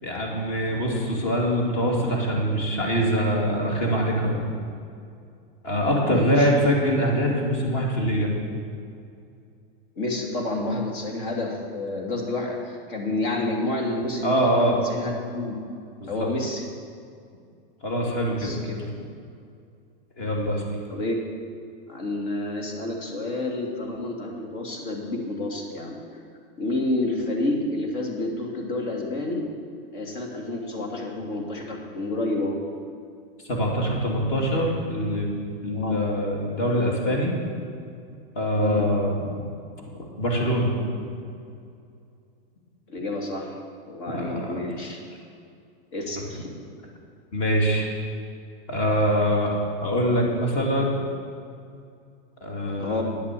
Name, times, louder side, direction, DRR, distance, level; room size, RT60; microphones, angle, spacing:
voice 1, 0.0-4.5 5.6-8.3 14.2-14.8 16.0-16.3 17.8-18.6 20.2-20.7 33.5-35.3 35.6-37.3 38.3-39.3 40.2-40.7 44.1-44.6 46.1-46.2 47.3-47.9 48.7-51.0 52.4-53.0, equal, 40° left, -1 dB, 3.0 m, -24 dB
voice 2, 6.1-6.5 10.0-15.5 16.1-16.6 18.4-18.6 20.9-21.2 21.9-26.0 26.6-29.5 29.9-32.6 35.7-36.0 38.6-38.9 42.9-43.5 43.9-45.0 45.9-46.5 52.8-53.0, left 2 dB, 60° left, 0 dB, 2.7 m, -29 dB
10.5 x 8.5 x 7.7 m, 2.4 s
supercardioid pair, 150°, 29 cm